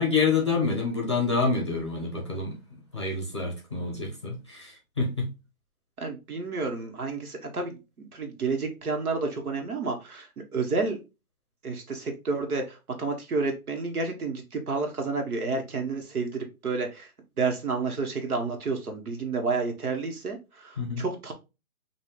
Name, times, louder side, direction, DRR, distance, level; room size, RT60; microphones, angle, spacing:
voice 1, 0.0-2.6 2.9-5.3 20.8-21.0, left 4 dB, 20° left, 0.7 m, -27 dB
voice 2, 6.0-11.0 11.6-17.1 17.4-21.3, right 4 dB, 85° right, 1.4 m, -30 dB
5.5 x 2.6 x 3.2 m
hypercardioid pair, 180°, 43 cm